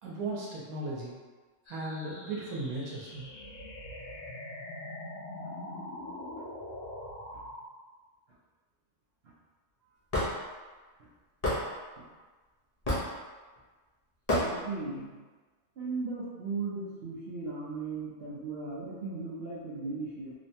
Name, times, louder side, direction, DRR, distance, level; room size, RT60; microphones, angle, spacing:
voice 1, 0.0-1.2 1.7-3.3, right 2 dB, 90° right, -5 dB, 1.1 m, -36 dB
sound 1, 1.7-7.6, left 1 dB, 80° left, 1.1 m, -43 dB
Hammer / Wood, 10.1-10.3 11.4-11.6 12.9-13.1 14.3-14.5, left 1 dB, 45° left, 0.5 m, -27 dB
voice 2, 14.4-15.2 15.8-20.3, right 3 dB, 65° right, -6 dB, 0.6 m, -37 dB
3.1 x 2.1 x 2.7 m, 1.3 s
omnidirectional pair, 1.5 m